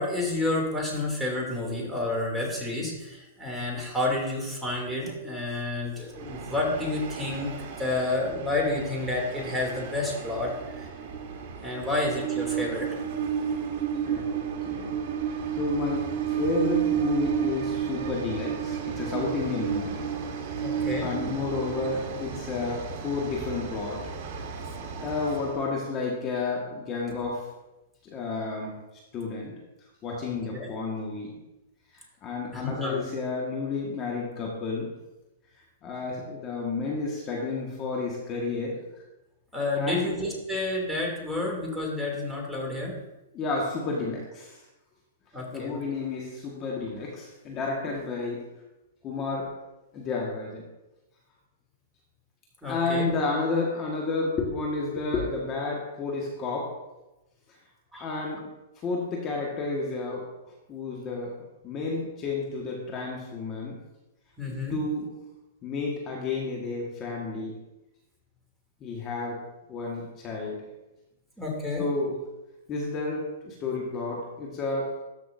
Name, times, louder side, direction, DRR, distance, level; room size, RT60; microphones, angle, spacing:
voice 1, 0.0-10.8 11.6-12.9 20.6-21.1 30.2-30.7 32.5-33.0 39.5-42.9 45.3-45.8 52.6-53.1 57.9-58.1 64.4-64.8 71.4-71.9, left 2 dB, 5° right, -3 dB, 2.8 m, -30 dB
Train, 6.1-25.6, right 8 dB, 50° right, 1.4 m, -32 dB
voice 2, 14.1-15.0 15.5-20.1 20.7-24.1 25.0-27.5 28.0-28.8 29.1-29.5 30.0-31.4 32.2-34.9 35.8-38.8 39.8-40.1 43.3-44.6 45.5-48.5 49.0-49.6 49.9-50.6 52.6-56.8 58.0-58.5 58.8-60.3 60.7-61.4 61.6-63.8 64.7-65.1 65.6-67.6 68.8-69.4 69.7-70.6 71.8-72.1 72.7-74.9, left 3 dB, 30° left, -2 dB, 1.6 m, -31 dB
13.5 x 6.1 x 2.7 m, 0.99 s
hypercardioid pair, 125°, 0 cm